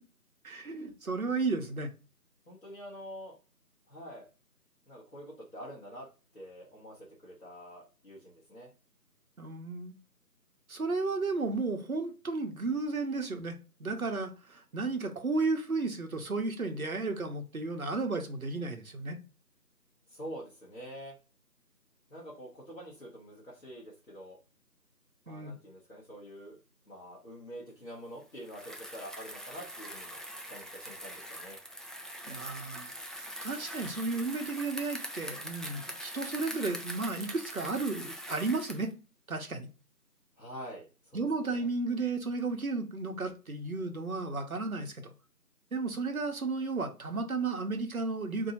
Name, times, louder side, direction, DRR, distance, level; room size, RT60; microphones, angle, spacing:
voice 1, 0.4-1.9 9.4-9.9 10.7-19.2 25.3-25.6 32.3-32.9 33.2-38.9 39.3-39.7 41.1-45.1 45.7-48.5, right 3 dB, 60° right, 5 dB, 0.7 m, -33 dB
voice 2, 2.5-3.3 3.9-4.3 4.9-6.1 6.3-8.7 20.1-21.1 22.1-24.4 25.3-26.6 26.9-31.6 40.4-41.7, equal, 55° left, -5 dB, 1.1 m, -46 dB
Bicycle, 28.4-38.9, equal, ahead, 0.3 m, -42 dB
2.7 x 2.5 x 4.1 m, 0.33 s
figure-of-eight pair, 175°, 48 cm